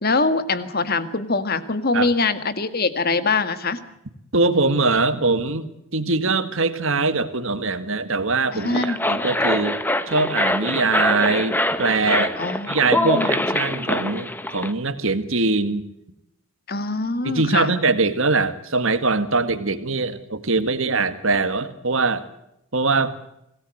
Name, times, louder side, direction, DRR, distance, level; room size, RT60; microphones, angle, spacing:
voice 1, 0.0-3.8 8.5-9.0 12.4-13.3 16.7-17.7, left 3 dB, 45° left, 11 dB, 1.8 m, -23 dB
voice 2, 4.3-9.8 10.1-12.3 12.7-15.8 17.2-22.2 22.7-23.2, right 3 dB, 60° right, 11 dB, 1.9 m, -22 dB
sound 1, 8.5-14.7, left 1 dB, 10° left, 1.2 m, -24 dB
26.0 x 18.0 x 7.8 m, 0.82 s
head